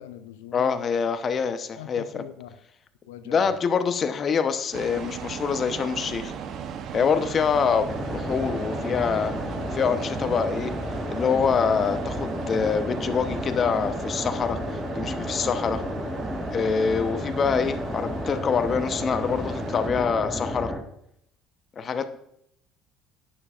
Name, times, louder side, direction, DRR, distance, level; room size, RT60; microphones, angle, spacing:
voice 1, 0.0-0.6 1.8-2.5 3.1-3.5, left 11 dB, 80° left, 11 dB, 0.5 m, -42 dB
voice 2, 0.5-2.2 3.2-6.3 6.9-9.3 9.7-10.7 11.1-15.8 16.5-20.7 21.8-22.2, left 6 dB, 45° left, 9 dB, 0.9 m, -25 dB
sound 1, 4.7-19.9, right 7 dB, 55° right, 0.9 m, -37 dB
sound 2, 7.9-20.8, equal, ahead, 1.6 m, -32 dB
11.0 x 9.1 x 2.5 m, 0.74 s
hypercardioid pair, 60°, 0 cm